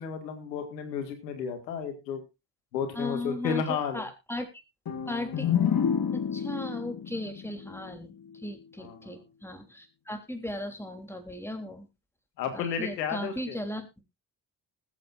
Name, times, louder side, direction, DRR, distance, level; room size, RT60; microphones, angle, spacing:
voice 1, 0.0-2.2 2.7-4.0 8.8-9.0 12.4-13.6, left 7 dB, 90° left, 7 dB, 2.0 m, -32 dB
voice 2, 2.9-4.6 5.1-5.5 6.1-11.9 12.5-13.9, left 1 dB, 5° left, 5 dB, 3.3 m, -37 dB
sound 1, 4.9-8.5, left 8 dB, 45° left, 2.1 m, -30 dB
20.0 x 8.4 x 2.6 m, 0.24 s
hypercardioid pair, 45°, 49 cm